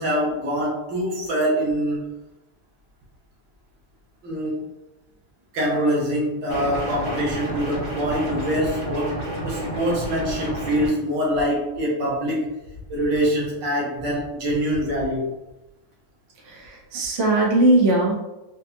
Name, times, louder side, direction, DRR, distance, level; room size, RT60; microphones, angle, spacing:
voice 1, 0.0-2.1 4.2-4.6 5.5-9.2 9.4-12.5 12.9-15.3, equal, 60° right, -4 dB, 1.5 m, -24 dB
sound 1, 6.5-10.9, right 1 dB, 30° right, 0.8 m, -30 dB
voice 2, 16.5-18.1, right 2 dB, 80° right, -3 dB, 0.6 m, -19 dB
4.4 x 2.3 x 2.5 m, 0.97 s
omnidirectional pair, 2.4 m